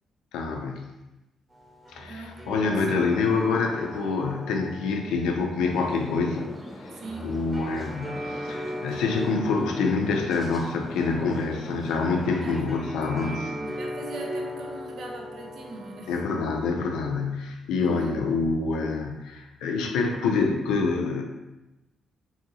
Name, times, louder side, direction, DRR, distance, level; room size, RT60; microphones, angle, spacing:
voice 1, 0.3-0.9 1.9-6.5 7.2-13.5 16.1-21.2, left 4 dB, 80° left, 2 dB, 0.4 m, -26 dB
sound 1, 1.5-16.7, equal, 25° right, 0.9 m, -39 dB
voice 2, 2.0-2.6 6.9-7.4 12.4-16.4 17.8-18.2, right 2 dB, 65° right, 0 dB, 0.5 m, -41 dB
sound 2, 5.7-12.6, equal, ahead, 0.6 m, -42 dB
2.7 x 2.6 x 2.8 m, 1.0 s
hypercardioid pair, 50°, 0 cm